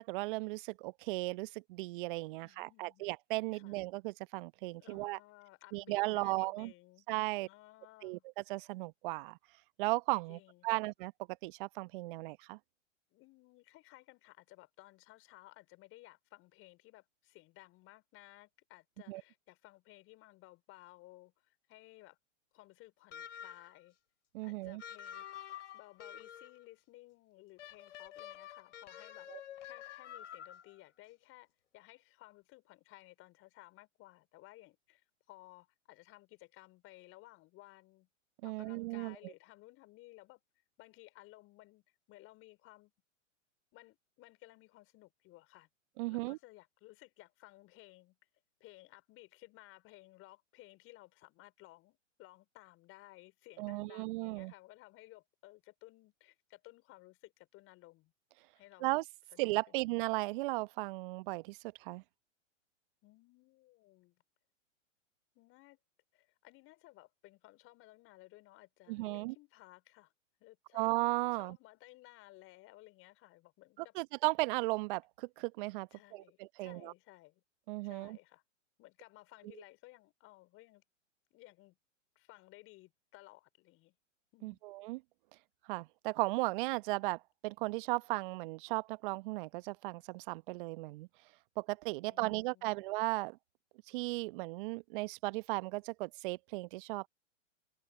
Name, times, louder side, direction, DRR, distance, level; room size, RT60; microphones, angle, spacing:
voice 1, 0.0-5.2 5.7-6.7 7.1-7.5 8.0-8.2 8.5-9.4 9.8-11.1 11.4-12.6 19.1-19.2 24.3-24.8 29.3-29.4 38.4-39.3 46.0-46.4 53.6-54.5 58.8-59.0 59.4-62.0 68.9-69.3 70.7-71.6 74.0-76.9 77.7-78.2 84.4-85.0 85.7-91.1 91.6-93.4 93.9-97.1, right 23 dB, 45° right, 0.9 m, -36 dB
voice 2, 2.4-3.1 3.5-3.8 4.8-7.1 7.3-8.3 10.3-10.9 13.1-22.2 22.5-24.0 24.4-25.2 25.7-29.3 29.6-31.5 31.7-38.1 38.4-40.4 40.8-42.9 43.7-45.7 46.1-48.2 48.6-58.1 58.5-58.9 59.3-59.8 63.0-64.2 65.3-65.8 66.1-70.1 70.4-70.9 71.3-73.9 75.9-77.4 77.8-78.4 78.8-80.8 81.3-81.8 82.1-83.9 84.3-84.6 92.0-92.8, left 19 dB, 35° left, 5.0 m, -58 dB
sound 1, 23.1-23.8 24.8-26.6 27.6-30.8, left 10 dB, 65° left, 2.7 m, -49 dB
hypercardioid pair, 110°, 38 cm